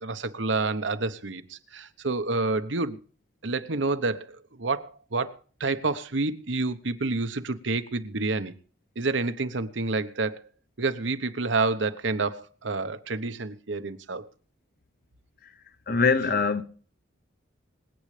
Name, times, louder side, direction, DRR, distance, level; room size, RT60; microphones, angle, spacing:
voice 1, 0.0-3.0 3.4-8.5 9.0-10.5 10.8-14.3, right 3 dB, 85° right, 1.1 m, -29 dB
voice 2, 15.9-16.6, left 4 dB, 50° left, 1.0 m, -23 dB
26.0 x 8.8 x 3.3 m
head